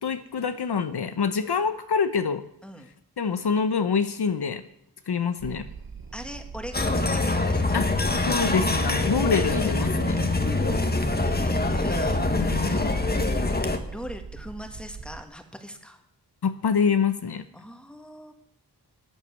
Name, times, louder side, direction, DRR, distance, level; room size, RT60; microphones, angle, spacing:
voice 1, 0.0-2.4 3.2-4.6 5.1-5.6 7.7-7.9 8.2-10.2 12.3-12.9 16.4-17.4, left 6 dB, 70° left, 10 dB, 0.8 m, -25 dB
sound 1, 5.4-15.2, right 5 dB, 55° right, 1.3 m, -41 dB
voice 2, 6.1-7.8 10.5-10.6 11.1-12.5 13.9-16.0 17.5-18.3, equal, ahead, 5 dB, 1.9 m, -41 dB
sound 2, 6.7-13.8, left 2 dB, 25° left, 1.3 m, -24 dB
11.0 x 9.2 x 7.1 m, 0.73 s
wide cardioid pair, 55°, 41 cm